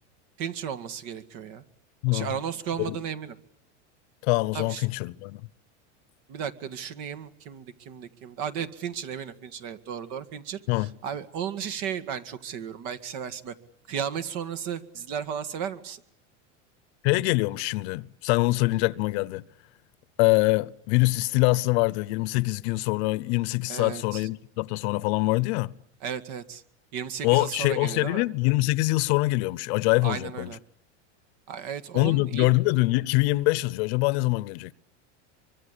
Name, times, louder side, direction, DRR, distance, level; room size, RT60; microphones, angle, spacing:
voice 1, 0.4-1.6 2.1-3.4 4.5-4.9 6.3-13.5 13.9-16.0 23.7-24.3 26.0-26.6 26.9-28.2 30.0-30.6 31.5-32.5, right 8 dB, 55° right, 2.1 m, -34 dB
voice 2, 4.2-5.4 10.7-10.9 17.0-19.4 20.2-25.7 27.2-30.5 31.9-34.7, left 22 dB, 60° left, 1.0 m, -24 dB
24.5 x 24.0 x 8.4 m
supercardioid pair, 130°, 37 cm